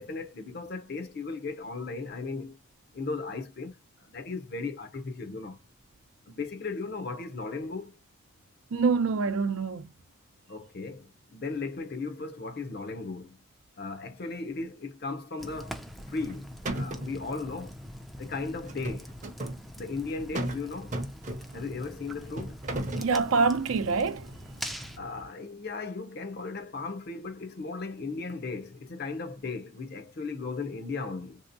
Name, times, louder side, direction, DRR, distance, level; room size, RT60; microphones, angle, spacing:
voice 1, 0.0-2.6 2.9-3.8 4.1-5.6 6.3-8.0 10.5-13.4 13.8-15.8 16.1-17.7 18.2-19.1 19.8-21.0 21.5-22.6 25.0-31.4, left 3 dB, 50° left, 0.6 m, -36 dB
voice 2, 8.7-9.9 23.0-24.3, right 4 dB, 80° right, 0.5 m, -26 dB
Fire, 15.4-25.0, equal, ahead, 0.3 m, -44 dB
sound 1, 16.0-16.3 16.6-17.2 18.7-19.6 20.3-20.6 20.9-21.7 22.4-23.1, right 1 dB, 35° right, 0.6 m, -34 dB
3.4 x 2.8 x 2.5 m
head